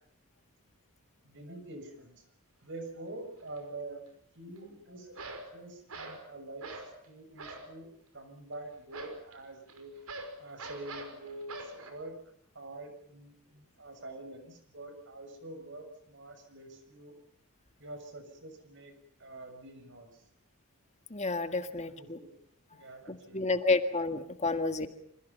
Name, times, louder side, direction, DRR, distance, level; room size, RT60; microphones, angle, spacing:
voice 1, 1.2-2.2 2.6-5.2 5.5-7.9 8.1-9.9 10.4-12.1 12.5-17.1 17.8-18.9 19.2-20.2 21.7-22.3 22.7-23.6, right 2 dB, 55° right, 7 dB, 6.6 m, -46 dB
sound 1, 3.4-3.6 5.1-5.5 5.9-6.2 6.6-7.0 7.4-7.7 8.9-11.9, right 3 dB, 75° right, 5.7 m, -43 dB
voice 2, 21.1-22.2 23.1-24.9, left 3 dB, 30° left, 7 dB, 1.8 m, -30 dB
28.5 x 26.5 x 5.6 m, 0.68 s
head